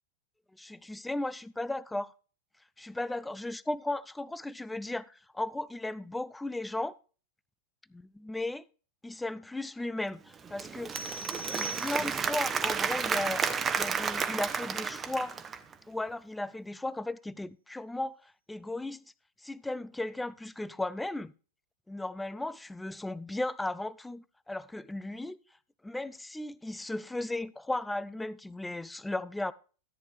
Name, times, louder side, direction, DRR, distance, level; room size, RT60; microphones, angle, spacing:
voice 1, 0.5-2.1 2.8-7.0 7.9-8.7 9.0-11.0 11.5-15.4 15.9-19.0 19.4-21.3 21.9-25.4 25.8-29.5, left 2 dB, 5° left, 0.5 m, -36 dB
Applause / Crowd, 10.3-15.7, right 6 dB, 20° right, 1.0 m, -32 dB
sound 1, 10.9-12.5, right 3 dB, 75° right, 1.4 m, -40 dB
13.5 x 9.1 x 3.3 m
figure-of-eight pair, 90°, 0 cm